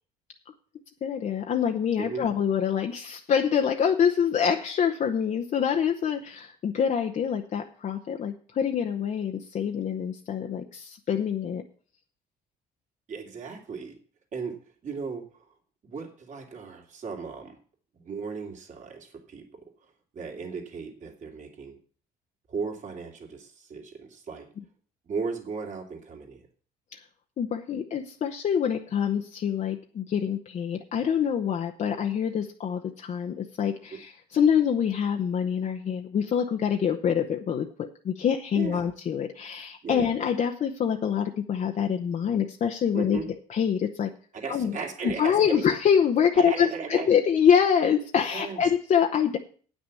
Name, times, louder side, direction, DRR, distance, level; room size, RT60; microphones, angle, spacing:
voice 1, 1.0-11.6 26.9-27.0 27.4-44.1 44.5-44.8 45.0-49.4, left 7 dB, 45° left, 3 dB, 0.9 m, -25 dB
voice 2, 13.1-14.0 14.3-15.4 15.8-17.6 18.0-19.6 20.1-21.8 22.5-24.5 25.1-26.4 33.9-34.0 38.5-38.9 39.8-40.1 42.9-43.2 44.3-45.6 46.4-47.1 48.3-48.6, right 5 dB, 45° right, 2 dB, 2.8 m, -36 dB
8.8 x 6.3 x 8.4 m, 0.42 s
cardioid pair, 110°, 17 cm